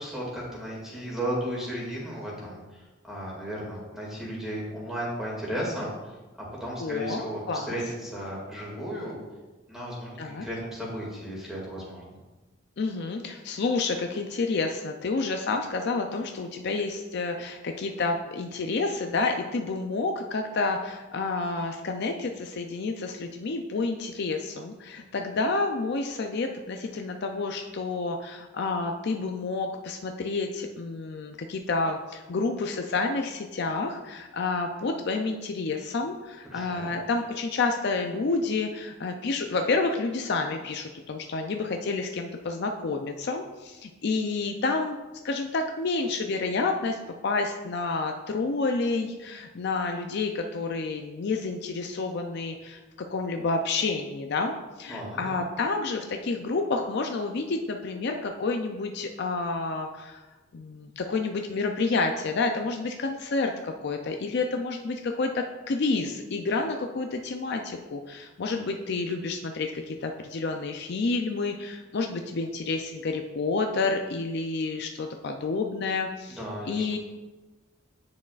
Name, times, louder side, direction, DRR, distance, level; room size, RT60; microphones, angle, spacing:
voice 1, 0.0-9.2 9.7-12.0 36.4-36.9 54.9-55.4 76.4-77.0, equal, ahead, -5 dB, 2.1 m, -35 dB
voice 2, 6.8-7.8 10.2-10.5 12.8-45.0 45.2-47.0 47.2-52.8 53.1-60.2 60.5-76.4 76.7-77.0, left 3 dB, 55° left, 4 dB, 0.4 m, -29 dB
9.6 x 6.0 x 2.4 m, 1.2 s
head